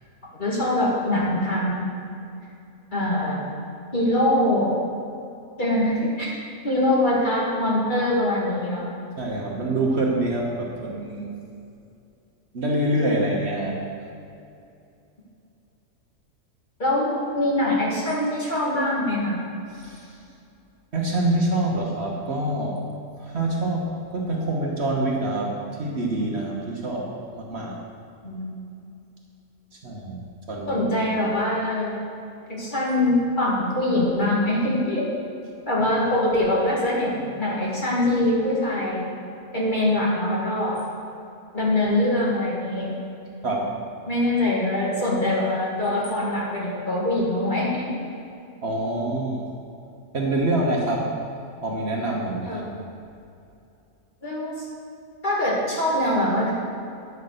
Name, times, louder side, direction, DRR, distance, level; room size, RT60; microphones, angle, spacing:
voice 1, 0.4-1.8 2.9-3.4 3.9-4.7 5.6-6.3 6.6-8.8 16.8-19.4 28.2-28.6 30.7-31.9 32.5-35.1 35.7-39.1 39.5-40.8 41.5-42.9 44.1-47.9 52.5-52.7 54.2-54.6 55.2-56.5, left 1 dB, 35° left, -5 dB, 2.2 m, -23 dB
voice 2, 9.2-11.3 12.5-13.8 19.8-20.0 20.9-22.8 23.2-25.5 25.8-27.7 29.8-30.2 30.5-30.8 43.4-43.7 48.6-49.4 50.1-51.1 51.6-52.6, right 1 dB, 50° right, -2 dB, 1.4 m, -25 dB
9.4 x 6.5 x 6.5 m, 2.6 s
omnidirectional pair, 1.5 m